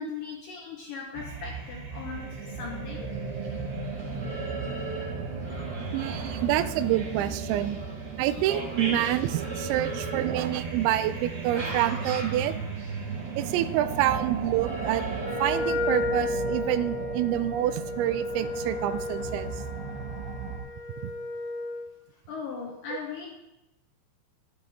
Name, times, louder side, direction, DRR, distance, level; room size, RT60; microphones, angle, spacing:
voice 1, 0.0-3.1 22.3-23.4, left 6 dB, 70° left, -2 dB, 2.1 m, -38 dB
sound 1, 1.1-20.6, right 5 dB, 70° right, 3.5 m, -35 dB
sound 2, 2.9-15.6, right 2 dB, 30° right, 3.1 m, -40 dB
voice 2, 5.9-7.8 8.2-12.6 13.4-15.1 15.4-19.5, right 13 dB, 90° right, 12 dB, 3.0 m, -27 dB
Wind instrument woodwind instrument, 15.2-21.9, left 2 dB, 90° left, 3.9 m, -33 dB
12.0 x 9.9 x 3.5 m, 0.93 s
omnidirectional pair, 5.2 m